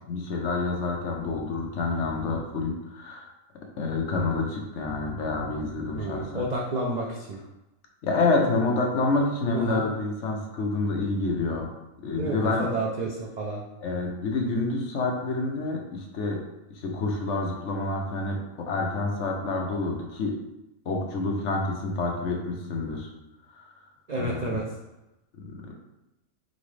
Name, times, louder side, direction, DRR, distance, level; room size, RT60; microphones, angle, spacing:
voice 1, 0.1-3.3 3.8-6.5 8.0-11.7 12.0-12.7 13.8-16.4 16.7-20.3 20.9-23.1 23.5-23.8 24.2-24.6 25.4-25.7, left 3 dB, 60° left, 1 dB, 1.0 m, -28 dB
voice 2, 5.9-7.4 9.5-9.9 12.2-13.6 24.1-24.6, right 2 dB, 80° right, -2 dB, 0.3 m, -30 dB
3.9 x 3.5 x 3.2 m, 0.95 s
omnidirectional pair, 1.5 m